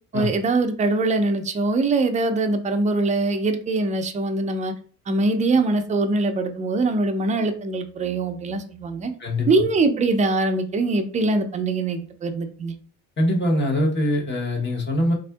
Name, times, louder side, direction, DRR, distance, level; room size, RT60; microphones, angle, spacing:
voice 1, 0.1-4.7 5.1-9.1 9.5-12.7, right 3 dB, 20° right, 6 dB, 0.3 m, -22 dB
voice 2, 13.2-15.1, left 1 dB, 35° left, -1 dB, 0.9 m, -22 dB
3.5 x 2.5 x 2.2 m, 0.43 s
cardioid pair, 120°, 34 cm